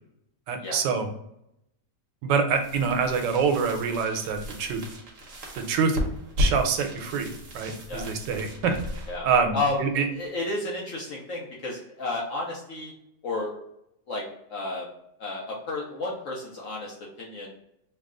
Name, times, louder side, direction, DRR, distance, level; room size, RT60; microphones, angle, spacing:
voice 1, 0.5-1.1 2.2-4.8 5.6-6.0 6.4-8.8 9.2-10.1, right 5 dB, 80° right, 6 dB, 1.2 m, -25 dB
sound 1, 2.5-10.3, left 1 dB, 55° right, 1.1 m, -34 dB
voice 2, 9.1-12.9 13.2-13.5 14.1-14.2 14.5-14.9 15.2-17.5, left 2 dB, 60° left, -3 dB, 0.8 m, -32 dB
3.1 x 2.3 x 3.6 m, 0.80 s
omnidirectional pair, 1.9 m